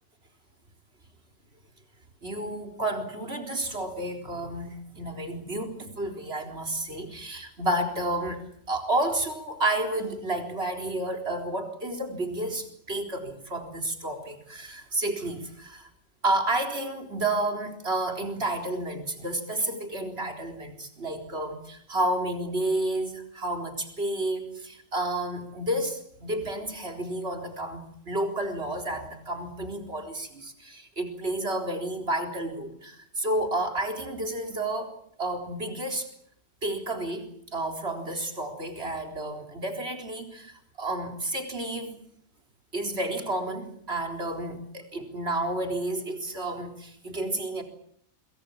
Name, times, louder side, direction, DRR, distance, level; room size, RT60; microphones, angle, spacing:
voice 1, 2.2-15.9 16.2-36.1 36.6-42.0 42.7-47.6, right 1 dB, 45° right, 4 dB, 4.4 m, -31 dB
25.5 x 24.0 x 7.4 m, 0.67 s
omnidirectional pair, 1.4 m